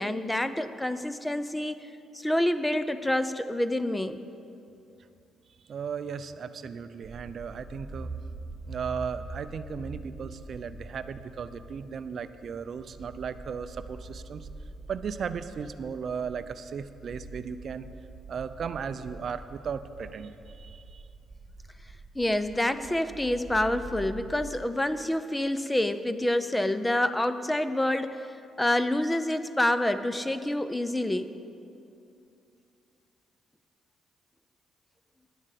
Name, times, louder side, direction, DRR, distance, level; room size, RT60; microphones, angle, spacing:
voice 1, 0.0-1.8 2.1-4.2 22.2-28.3 28.6-31.3, left 1 dB, 10° left, 12 dB, 0.5 m, -27 dB
voice 2, 5.7-8.1 8.7-14.5 14.9-17.8 18.3-21.0, right 6 dB, 55° right, 11 dB, 0.5 m, -36 dB
sound 1, 7.0-24.5, right 2 dB, 30° right, 1.6 m, -44 dB
10.0 x 7.4 x 8.2 m, 2.6 s
cardioid pair, 90°, 0 cm